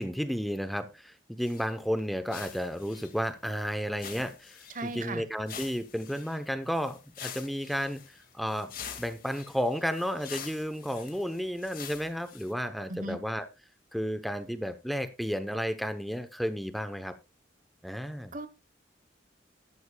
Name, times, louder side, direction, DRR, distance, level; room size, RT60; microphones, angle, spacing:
voice 1, 0.0-8.7 9.0-13.5 13.9-17.1 17.8-18.3, equal, ahead, 0.8 m, -32 dB
sound 1, 1.4-1.7 2.0-2.1 2.3-3.6 4.0-5.1 5.4-12.5, left 8 dB, 50° left, 2.1 m, -46 dB
voice 2, 4.7-5.2 12.9-13.2 18.3-18.5, right 2 dB, 45° right, 1.1 m, -36 dB
13.0 x 12.5 x 2.3 m
head